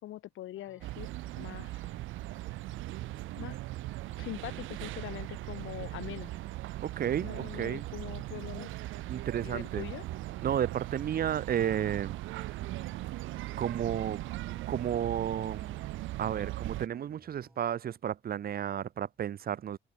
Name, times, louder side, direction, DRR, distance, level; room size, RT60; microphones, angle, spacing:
voice 1, 0.0-1.1 1.4-1.9 3.4-3.6 4.2-6.3 7.2-8.8 9.4-10.0, left 14 dB, 80° left, 2.3 m, -43 dB
sound 1, 0.5-17.6, right 1 dB, 10° right, 3.3 m, -61 dB
sound 2, 0.8-16.9, right 17 dB, 80° right, 0.5 m, -39 dB
voice 2, 6.8-7.9 9.1-9.9 10.4-12.2 13.6-14.2 14.7-15.8 16.2-19.8, right 9 dB, 50° right, 0.7 m, -32 dB
cardioid pair, 90°, 20 cm